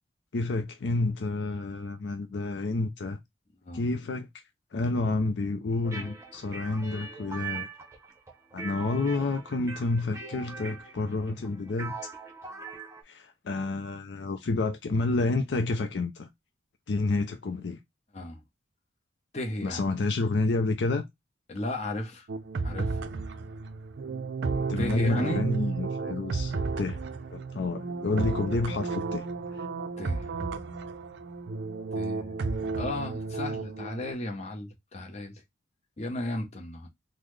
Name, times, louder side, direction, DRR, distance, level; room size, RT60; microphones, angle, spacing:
voice 1, 0.3-3.2 3.7-4.3 4.7-7.7 8.5-11.9 13.1-16.3 16.9-17.8 19.6-21.0 24.7-27.0 27.3-29.2 29.6-29.7, left 3 dB, 65° left, 0.4 m, -29 dB
sound 1, 5.8-13.0, right 5 dB, 15° right, 0.7 m, -41 dB
voice 2, 18.1-18.4 19.3-19.8 21.5-22.3 22.6-23.0 24.8-25.5 30.0-30.3 31.9-32.3 32.8-35.4 36.0-36.9, left 1 dB, 35° left, 0.7 m, -34 dB
sound 2, 22.3-34.1, right 4 dB, 65° right, 0.4 m, -33 dB
3.8 x 2.0 x 3.1 m
head